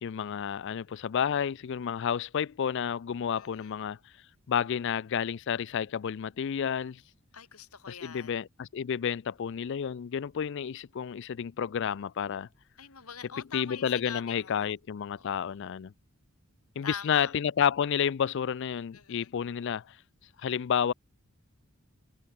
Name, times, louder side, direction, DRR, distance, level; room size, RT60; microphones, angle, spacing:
voice 1, 0.0-4.0 4.5-7.0 7.9-12.5 13.5-15.9 16.8-20.0 20.4-20.9, left 8 dB, 55° left, 0.4 m, -30 dB
voice 2, 3.4-3.7 7.3-8.3 12.8-14.7 15.1-15.6 16.8-17.3 18.9-19.3, left 7 dB, 85° left, 2.3 m, -44 dB
head